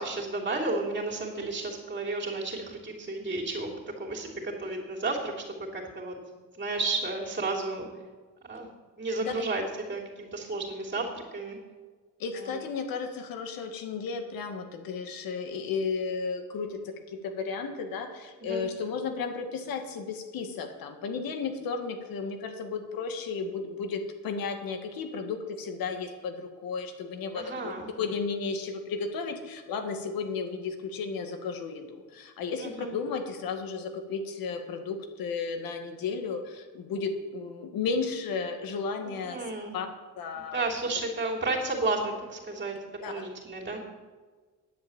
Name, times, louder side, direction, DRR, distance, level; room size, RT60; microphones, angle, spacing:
voice 1, 0.0-6.2 6.5-7.9 8.4-8.7 9.0-11.6 12.3-12.5 18.4-18.6 27.3-27.9 32.6-32.9 39.0-39.8 40.3-43.8, right 2 dB, 35° right, -1 dB, 3.2 m, -32 dB
voice 2, 12.2-27.7 28.0-39.4 39.7-39.9 40.2-40.6 43.0-43.3, left 5 dB, 90° left, 5 dB, 1.8 m, -34 dB
10.5 x 7.8 x 8.7 m, 1.4 s
cardioid pair, 110°, 34 cm